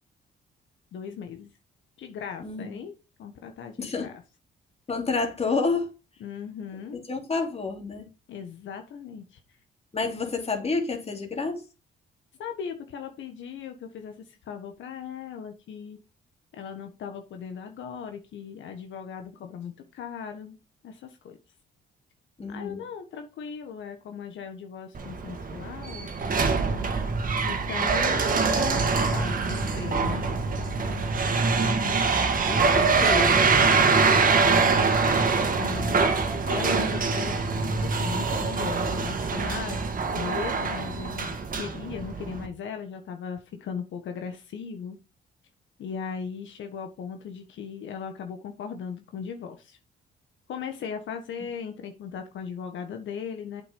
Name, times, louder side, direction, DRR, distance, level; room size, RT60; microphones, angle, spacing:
voice 1, 0.9-1.5 2.0-2.9 3.2-4.1 6.2-7.0 8.3-9.4 12.4-16.0 16.5-20.6 20.8-21.4 22.5-26.1 26.3-26.9 27.4-30.3 34.4-35.0 35.5-36.1 36.5-39.9 40.1-45.0 45.8-49.8 50.5-53.6, left 7 dB, 70° left, 1.4 m, -38 dB
voice 2, 2.4-2.8 3.8-4.1 4.9-5.9 6.9-8.1 9.9-11.6 22.4-22.8 31.6-32.1 32.5-33.5, left 4 dB, 30° left, 2.9 m, -29 dB
sound 1, 24.9-42.5, right 4 dB, 45° right, 1.9 m, -24 dB
8.0 x 6.0 x 5.3 m
cardioid pair, 90°, 20 cm